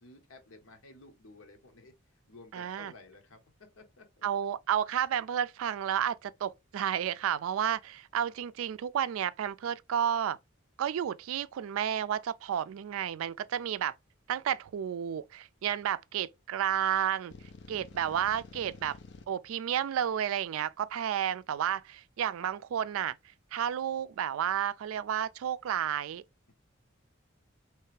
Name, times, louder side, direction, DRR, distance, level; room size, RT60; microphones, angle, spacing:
voice 1, 0.0-4.3 18.3-18.9, left 2 dB, 80° left, 1.0 m, -55 dB
voice 2, 2.5-2.9 4.2-10.4 10.8-13.9 14.3-17.3 17.7-19.0 19.3-23.2 23.5-26.2, right 9 dB, 80° right, 0.3 m, -31 dB
sound 1, 17.3-19.2, left 4 dB, 55° left, 0.5 m, -50 dB
3.3 x 3.1 x 3.2 m
head